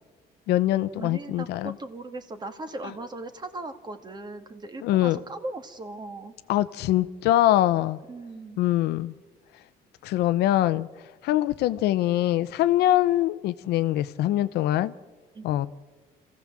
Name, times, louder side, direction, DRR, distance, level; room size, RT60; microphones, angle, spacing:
voice 1, 0.5-1.7 4.8-5.2 6.5-8.0 8.6-9.1 10.0-10.9 11.2-14.9 15.4-15.7, left 14 dB, 90° left, 0.8 m, -23 dB
voice 2, 1.0-6.3 8.1-8.6 15.3-15.6, right 2 dB, 25° right, 2.0 m, -38 dB
27.0 x 15.5 x 7.5 m
cardioid pair, 125°, 17 cm